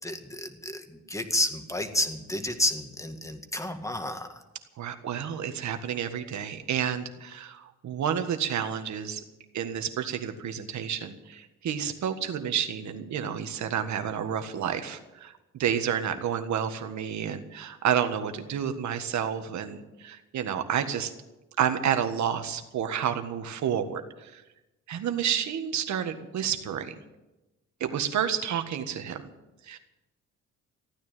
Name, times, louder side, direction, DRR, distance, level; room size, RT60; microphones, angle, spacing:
voice 1, 0.0-4.4, left 1 dB, 10° left, 7 dB, 1.9 m, -31 dB
voice 2, 4.8-9.2 9.5-21.1 21.6-24.4 24.9-26.9 27.8-29.2 29.6-29.8, right 8 dB, 70° right, 8 dB, 1.7 m, -30 dB
15.0 x 9.6 x 9.1 m, 1.0 s
cardioid pair, 90°, 30 cm